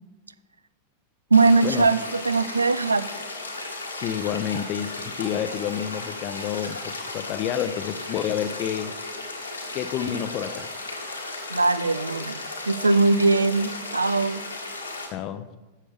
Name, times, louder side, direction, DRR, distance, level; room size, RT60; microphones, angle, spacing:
sound 1, 1.3-15.1, left 2 dB, 80° left, 1.6 m, -35 dB
voice 1, 1.3-3.2 11.5-12.4 12.7-14.4, right 3 dB, 80° right, 0.4 m, -21 dB
voice 2, 4.0-9.0 9.7-10.7 15.1-15.5, left 10 dB, 40° left, 0.6 m, -29 dB
13.0 x 7.5 x 3.4 m
figure-of-eight pair, 90°, 0 cm